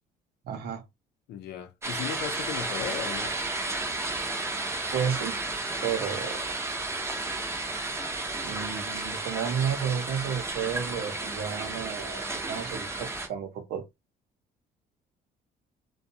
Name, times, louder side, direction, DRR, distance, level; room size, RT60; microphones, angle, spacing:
voice 1, 0.4-0.8 4.9-5.4 5.8-6.5 8.4-13.8, right 8 dB, 70° right, 0.8 m, -32 dB
voice 2, 1.3-3.4, left 8 dB, 75° left, 0.6 m, -36 dB
sound 1, 1.8-13.3, right 2 dB, 15° right, 0.7 m, -33 dB
2.4 x 2.3 x 2.7 m
cardioid pair, 110°, 17 cm